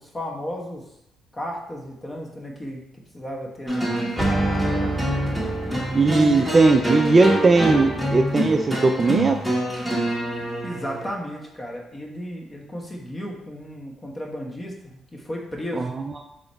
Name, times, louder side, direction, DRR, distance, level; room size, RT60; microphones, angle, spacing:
voice 1, 0.0-0.9 1.3-4.9 10.2-15.9, equal, 25° left, 0 dB, 1.0 m, -34 dB
sound 1, 3.7-11.1, right 1 dB, ahead, 1.3 m, -25 dB
voice 2, 5.9-9.4 15.8-15.9, right 3 dB, 30° right, 5 dB, 0.3 m, -18 dB
3.8 x 3.2 x 4.0 m, 0.83 s
cardioid pair, 90°, 0 cm